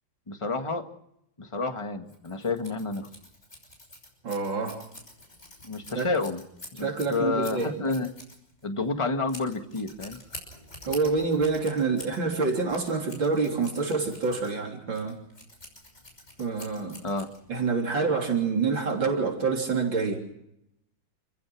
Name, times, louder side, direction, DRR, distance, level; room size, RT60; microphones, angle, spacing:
voice 1, 0.3-0.9 1.4-3.1 5.6-6.4 6.7-8.1 8.6-10.2 17.0-17.3, left 3 dB, 15° left, 5 dB, 1.8 m, -30 dB
Scissors, 2.1-17.7, left 1 dB, 35° left, 6.3 m, -47 dB
voice 2, 4.2-4.8 6.0-6.1 6.8-7.7 10.8-15.2 16.4-17.0 17.5-20.2, right 4 dB, 75° right, 1 dB, 4.2 m, -27 dB
29.0 x 15.5 x 6.2 m, 0.79 s
omnidirectional pair, 2.1 m